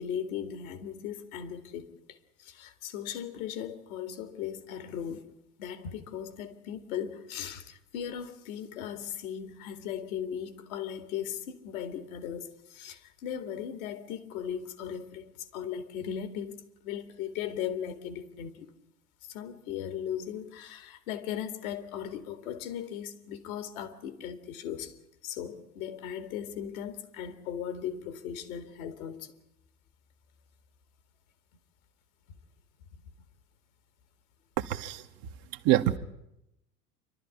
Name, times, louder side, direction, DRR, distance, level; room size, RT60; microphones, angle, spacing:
voice 1, 0.0-5.2 5.6-18.7 19.3-25.0 25.2-29.3 32.9-33.0, left 9 dB, 60° left, 2.4 m, -38 dB
voice 2, 34.6-35.0 35.6-36.0, right 14 dB, 45° right, 1.4 m, -25 dB
27.0 x 12.5 x 10.0 m
figure-of-eight pair, 80°, 48 cm